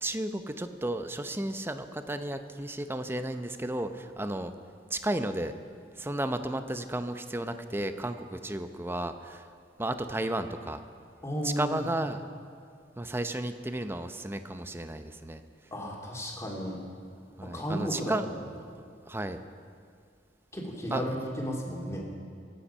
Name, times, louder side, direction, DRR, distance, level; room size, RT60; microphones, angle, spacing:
voice 1, 0.0-4.5 4.9-5.5 6.0-9.5 9.8-10.8 11.4-12.2 13.0-15.4 17.4-18.3 18.7-19.4 20.9-21.0, right 1 dB, 15° right, 9 dB, 0.7 m, -33 dB
voice 2, 11.2-11.8 15.7-16.8 17.4-18.3 20.5-22.0, equal, 15° left, -2 dB, 2.5 m, -34 dB
26.0 x 8.9 x 5.5 m, 2.4 s
head